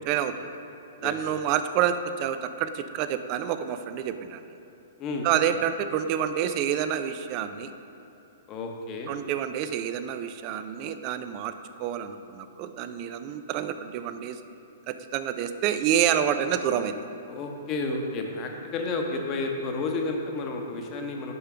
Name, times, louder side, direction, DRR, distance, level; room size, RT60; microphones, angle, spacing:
voice 1, 0.1-0.5 1.0-4.4 5.2-7.7 9.1-11.5 11.8-14.4 14.9-17.0, right 9 dB, 40° right, 10 dB, 0.4 m, -28 dB
voice 2, 8.5-9.1 17.3-21.3, left 3 dB, 35° left, 2 dB, 1.0 m, -31 dB
6.9 x 5.5 x 4.9 m, 3.0 s
hypercardioid pair, 120°, 0 cm